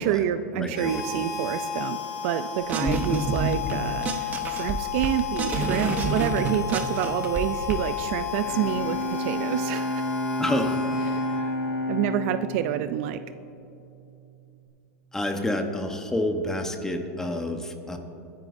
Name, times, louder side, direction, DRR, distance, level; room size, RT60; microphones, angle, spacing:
voice 1, 0.0-10.1 11.1-11.5 11.9-13.2, right 11 dB, 50° right, 11 dB, 0.5 m, -28 dB
voice 2, 0.6-1.2 2.8-3.2 10.4-10.8 15.1-18.0, left 1 dB, 5° left, 4 dB, 1.0 m, -28 dB
Harmonica, 0.7-11.7, left 8 dB, 65° left, 2.5 m, -33 dB
sound 1, 2.7-3.7 4.0-7.7, right 4 dB, 20° right, 0.9 m, -28 dB
Bowed string instrument, 8.2-13.9, left 1 dB, 45° left, 2.9 m, -30 dB
25.0 x 10.0 x 2.6 m, 2.7 s
supercardioid pair, 145°, 9 cm